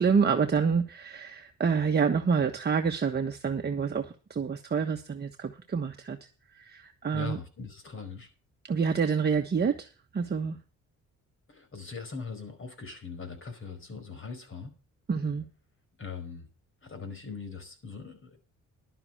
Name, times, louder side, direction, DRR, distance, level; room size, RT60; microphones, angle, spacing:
voice 1, 0.0-6.2 6.5-7.4 8.6-10.6 15.1-15.4, right 6 dB, 35° right, 1.3 m, -27 dB
voice 2, 7.1-8.3 11.5-14.7 16.0-16.5 16.8-18.4, left 5 dB, 45° left, 4.8 m, -41 dB
11.5 x 9.8 x 4.8 m
cardioid pair, 90°, 30 cm